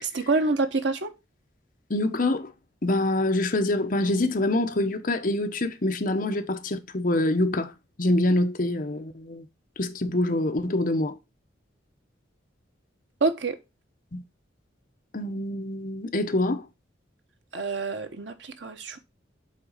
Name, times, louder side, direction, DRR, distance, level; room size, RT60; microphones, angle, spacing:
voice 1, 0.0-1.1 13.2-13.6 17.5-19.0, right 3 dB, 70° right, 1.0 m, -27 dB
voice 2, 1.9-2.5 2.8-7.7 8.0-9.4 9.8-11.1 14.1-14.2 15.1-16.6, left 1 dB, 45° left, 0.9 m, -25 dB
7.6 x 4.1 x 5.6 m
head